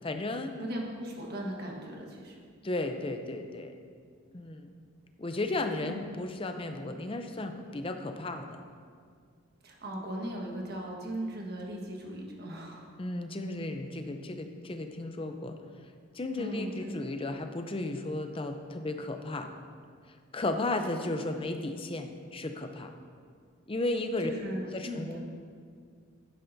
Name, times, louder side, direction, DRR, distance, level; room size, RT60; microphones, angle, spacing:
voice 1, 0.0-0.5 2.6-3.7 4.3-4.7 5.2-8.6 13.0-15.6 16.1-19.5 20.3-22.9 23.7-24.3 24.7-25.2, left 2 dB, 25° left, 6 dB, 0.6 m, -34 dB
voice 2, 0.6-2.3 5.8-6.0 9.6-12.9 16.4-17.3 24.2-25.2, equal, 50° right, -1 dB, 1.5 m, -38 dB
11.5 x 10.0 x 2.7 m, 2.1 s
head